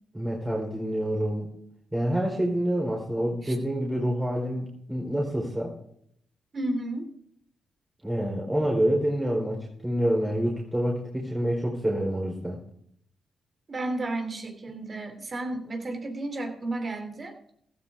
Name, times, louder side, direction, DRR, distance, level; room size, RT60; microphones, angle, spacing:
voice 1, 0.1-1.5 1.9-5.7 8.0-12.6, equal, 15° right, -2 dB, 4.5 m, -27 dB
voice 2, 6.5-7.1 13.7-17.4, right 2 dB, 45° right, 6 dB, 3.2 m, -32 dB
16.0 x 13.5 x 3.7 m, 0.68 s
supercardioid pair, 55°, 0 cm